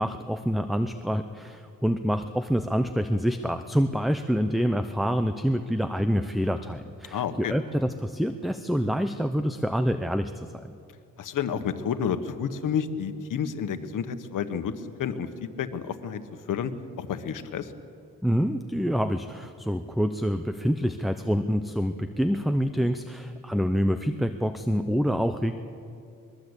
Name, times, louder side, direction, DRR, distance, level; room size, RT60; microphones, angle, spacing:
voice 1, 0.0-10.7 18.2-25.5, equal, ahead, 9 dB, 0.6 m, -26 dB
voice 2, 7.1-7.5 11.2-14.7 15.0-15.3 15.6-16.2 16.5-16.7 17.0-17.7, left 7 dB, 75° left, 9 dB, 1.4 m, -30 dB
23.0 x 21.5 x 8.2 m, 2.5 s
wide cardioid pair, 145°, 32 cm